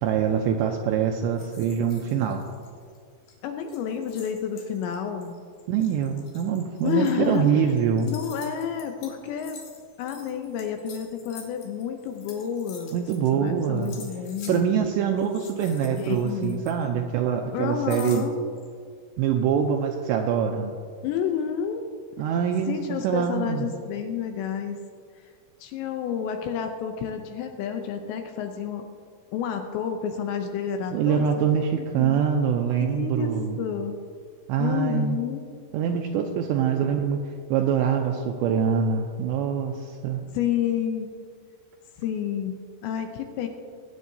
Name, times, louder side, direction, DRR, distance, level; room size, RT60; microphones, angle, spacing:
voice 1, 0.0-2.5 5.7-8.1 12.9-14.0 14.5-18.3 19.2-20.8 22.2-23.7 30.9-33.6 34.5-35.2 35.7-40.2, right 7 dB, 85° right, 3 dB, 2.5 m, -24 dB
sound 1, 1.4-3.0 3.2-3.3 3.6-13.5 13.8-14.6 15.1-17.1 17.9-18.7, left 6 dB, 60° left, 2.7 m, -48 dB
voice 2, 3.4-5.4 6.8-7.6 8.0-9.6 10.0-13.0 13.4-14.7 15.9-16.6 17.5-18.4 21.0-21.8 22.7-24.8 25.2-25.3 25.6-28.9 29.3-32.2 32.8-33.9 34.6-35.4 40.3-41.1 42.0-43.5, left 8 dB, 80° left, 5 dB, 2.7 m, -30 dB
20.5 x 9.2 x 2.7 m, 2.1 s
omnidirectional pair, 5.6 m